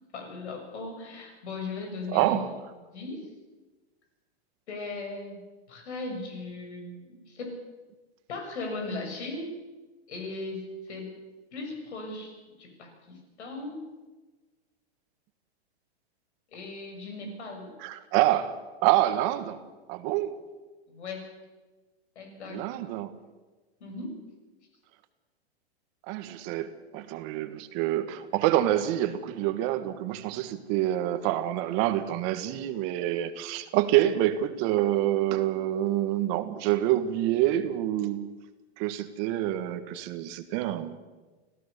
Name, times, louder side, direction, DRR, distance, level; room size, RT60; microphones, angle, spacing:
voice 1, 0.1-2.4 2.9-3.3 4.7-5.4 5.7-7.6 8.3-9.6 10.1-11.1 11.5-12.3 12.6-13.8 16.5-17.7 20.9-21.3 22.2-22.6 23.8-24.2, left 3 dB, 80° left, 6.9 m, -38 dB
voice 2, 2.1-2.5 17.8-18.6 18.8-19.6 19.9-20.4 22.5-23.1 26.1-38.4 38.8-41.0, right 13 dB, 40° right, 1.5 m, -27 dB
26.5 x 16.0 x 6.8 m
hypercardioid pair, 145°, 33 cm